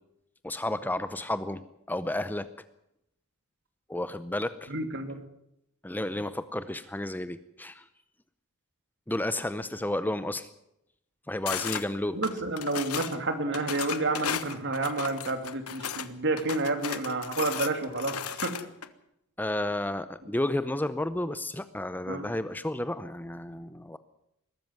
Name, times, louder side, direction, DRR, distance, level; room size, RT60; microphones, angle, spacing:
voice 1, 0.4-1.6 1.9-2.5 3.9-4.7 5.8-7.8 9.1-10.5 11.3-12.2 19.4-24.0, left 1 dB, 10° left, 13 dB, 0.7 m, -32 dB
voice 2, 4.7-5.2 12.1-18.5 22.1-22.3, right 2 dB, 55° right, 7 dB, 2.8 m, -30 dB
sound 1, 11.5-11.8 12.2-13.2 13.5-16.1 16.4-18.9, left 8 dB, 75° left, 1.3 m, -35 dB
21.5 x 13.0 x 9.4 m, 0.80 s
head